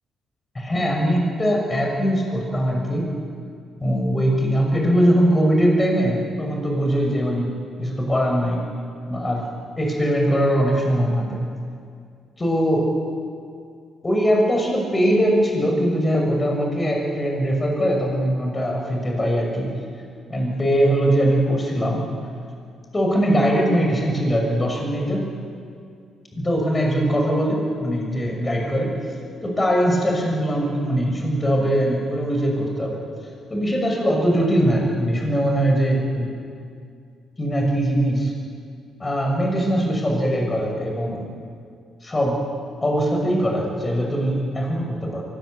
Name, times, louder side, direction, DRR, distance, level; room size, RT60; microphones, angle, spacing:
voice 1, 0.5-3.1 3.8-7.5 7.8-8.6 9.1-9.4 9.8-11.4 12.4-12.8 14.0-19.7 20.3-22.0 22.9-25.2 26.3-28.9 29.4-33.0 33.5-36.3 37.4-38.3 39.0-41.2 42.0-42.4 42.8-45.2, equal, 20° left, 0 dB, 6.4 m, -21 dB
24.0 x 19.5 x 8.0 m, 2.3 s
cardioid pair, 90°, 0 cm